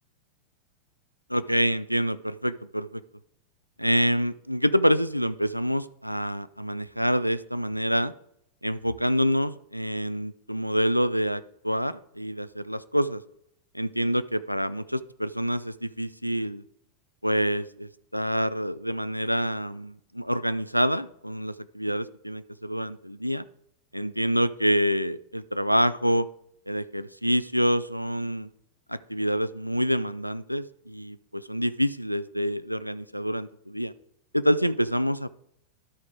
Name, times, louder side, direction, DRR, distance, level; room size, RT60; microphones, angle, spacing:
voice 1, 1.3-3.0 3.8-8.1 8.6-13.2 13.7-16.6 17.2-23.4 23.9-26.3 26.7-28.5 28.9-33.9 34.3-35.3, equal, 90° right, 14 dB, 0.3 m, -27 dB
12.0 x 4.8 x 3.8 m, 0.74 s
figure-of-eight pair, 90°, 0 cm